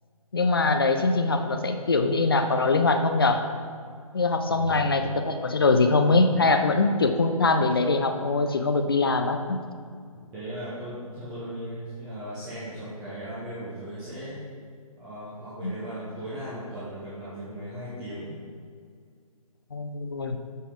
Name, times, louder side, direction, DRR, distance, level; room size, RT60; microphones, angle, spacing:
voice 1, 0.3-3.4 4.1-9.6 15.6-15.7 19.7-20.4, left 3 dB, 40° left, 7 dB, 0.4 m, -23 dB
voice 2, 4.4-5.1 10.3-14.4 15.0-18.3, right 1 dB, 10° right, -11 dB, 0.7 m, -37 dB
7.1 x 4.1 x 3.7 m, 2.1 s
figure-of-eight pair, 145°, 19 cm